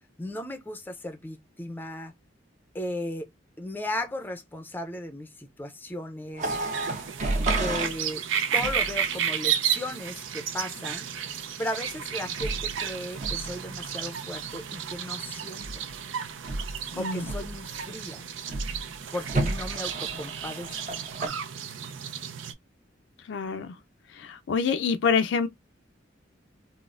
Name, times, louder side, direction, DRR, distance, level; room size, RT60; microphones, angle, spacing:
voice 1, 0.2-2.1 2.7-3.3 3.6-6.5 7.6-8.2 8.5-11.1 11.6-15.6 17.0-18.2 19.1-20.7, left 1 dB, 10° left, 0.5 m, -36 dB
sound 1, 6.3-8.0 8.6-8.9 12.4-12.7 13.1-13.5 15.6-16.0 16.4-16.8 17.2-17.7 18.5-18.8 19.2-21.3, right 2 dB, 40° right, 0.9 m, -31 dB
sound 2, 6.4-22.5, right 8 dB, 80° right, 0.5 m, -33 dB
voice 2, 23.3-23.7 24.5-25.5, left 5 dB, 65° left, 0.4 m, -25 dB
4.0 x 2.1 x 2.4 m
head